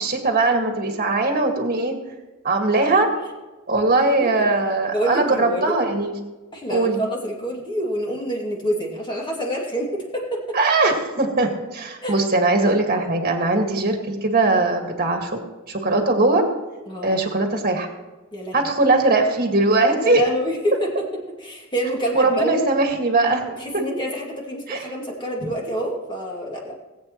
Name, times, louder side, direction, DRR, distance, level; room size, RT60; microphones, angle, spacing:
voice 1, 0.0-1.9 2.4-3.1 3.7-6.1 6.7-7.0 10.5-15.4 15.7-16.4 17.0-17.9 18.5-20.2 22.1-23.4 23.7-23.8 24.7-24.8 25.4-25.5, right 2 dB, 40° right, 3 dB, 1.9 m, -20 dB
voice 2, 4.9-5.7 6.5-10.6 12.0-12.1 16.9-17.5 18.3-18.6 20.0-20.9 21.4-22.6 23.6-26.8, equal, 20° left, -2 dB, 2.5 m, -27 dB
19.5 x 8.5 x 3.1 m, 1.2 s
head